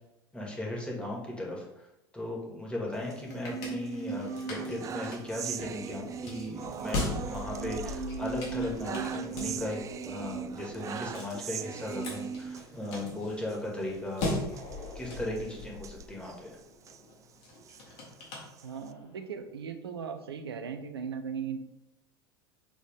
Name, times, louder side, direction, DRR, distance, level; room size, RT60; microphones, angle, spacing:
voice 1, 0.3-1.6 2.1-9.8 10.1-14.4 15.0-16.6, left 1 dB, 10° left, -2 dB, 2.1 m, -37 dB
sound 1, 2.9-19.1, left 3 dB, 55° left, 2.2 m, -40 dB
sound 2, 2.9-3.9 4.3-13.1 13.4-13.6 13.8-14.0 14.5-17.0 17.5-18.9, right 8 dB, 25° right, 0.3 m, -41 dB
sound 3, 3.2-12.5 12.8-12.9, right 5 dB, 45° right, 1.0 m, -41 dB
voice 2, 18.6-21.6, right 6 dB, 75° right, 8 dB, 0.8 m, -38 dB
7.3 x 4.0 x 3.6 m, 0.89 s
figure-of-eight pair, 80°, 13 cm